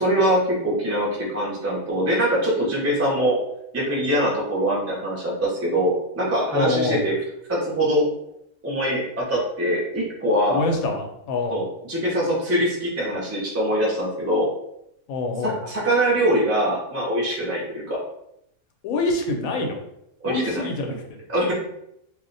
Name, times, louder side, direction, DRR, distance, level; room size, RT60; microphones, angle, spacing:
voice 1, 0.0-3.4 3.7-7.1 7.5-8.1 8.6-10.6 11.5-14.5 15.4-18.0 20.2-20.6 21.3-21.5, right 1 dB, 20° right, -5 dB, 0.4 m, -23 dB
voice 2, 6.5-7.0 10.5-11.6 15.1-15.6 18.8-19.8 20.2-20.9, left 2 dB, 85° left, 3 dB, 1.1 m, -25 dB
2.4 x 2.1 x 3.8 m, 0.79 s
omnidirectional pair, 1.4 m